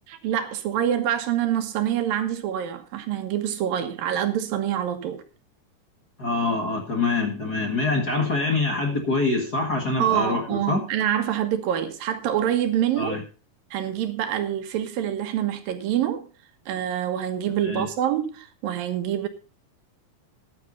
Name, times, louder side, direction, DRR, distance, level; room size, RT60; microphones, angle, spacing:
voice 1, 0.1-5.2 10.0-13.2 13.7-16.3 16.7-19.3, right 10 dB, 80° right, 3.1 m, -26 dB
voice 2, 6.2-10.8 13.0-13.2 17.6-17.9, left 3 dB, 35° left, 1.7 m, -25 dB
14.0 x 10.5 x 4.0 m
omnidirectional pair, 4.0 m